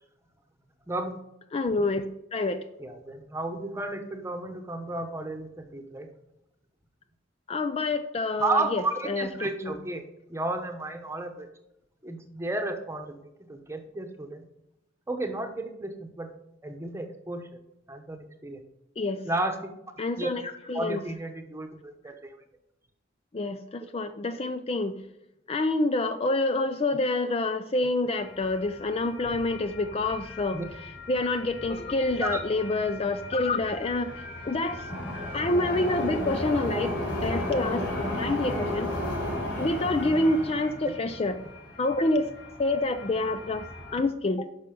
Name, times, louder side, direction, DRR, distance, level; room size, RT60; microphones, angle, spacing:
voice 1, 0.9-1.2 2.8-6.1 8.4-10.0 10.3-11.5 12.0-13.2 13.5-14.4 15.1-16.3 16.6-17.6 17.9-18.6 19.2-19.6 20.2-20.3 20.7-22.3 30.5-30.6 32.2-32.4 40.8-40.9, right 2 dB, 15° right, 6 dB, 1.0 m, -32 dB
voice 2, 1.5-2.0 2.3-2.6 7.5-9.8 19.0-19.2 20.0-20.4 20.7-21.0 23.3-24.9 25.5-30.6 31.1-34.9 35.3-36.9 37.2-38.9 39.6-41.4 41.8-42.3 42.6-43.7 43.9-44.5, left 2 dB, 30° left, 10 dB, 0.4 m, -27 dB
sound 1, 28.1-44.0, left 1 dB, 60° left, 4.2 m, -35 dB
10.5 x 6.1 x 5.2 m, 0.89 s
head